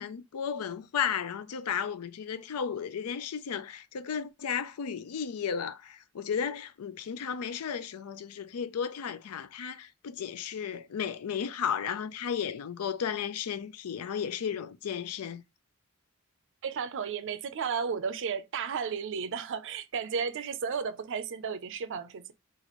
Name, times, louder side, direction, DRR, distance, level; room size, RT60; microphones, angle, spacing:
voice 1, 0.0-15.4, left 7 dB, 90° left, 0.4 m, -34 dB
voice 2, 16.6-22.3, right 6 dB, 60° right, 0.5 m, -33 dB
4.1 x 2.5 x 2.9 m
head